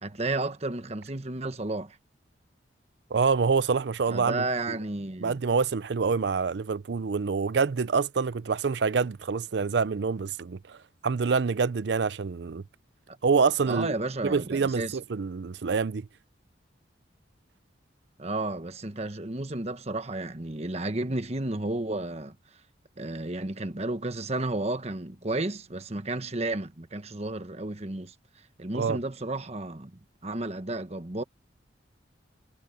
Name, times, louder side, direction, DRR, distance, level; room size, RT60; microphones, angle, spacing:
voice 1, 0.0-2.0 4.1-5.4 13.1-13.2 13.7-15.0 18.2-22.3 23.0-28.1 28.6-31.2, right 2 dB, 35° right, 1.3 m, -32 dB
voice 2, 3.1-4.8 5.2-10.8 11.0-12.6 13.2-13.9 14.2-16.1 28.7-29.0, right 5 dB, 65° right, 0.5 m, -26 dB
head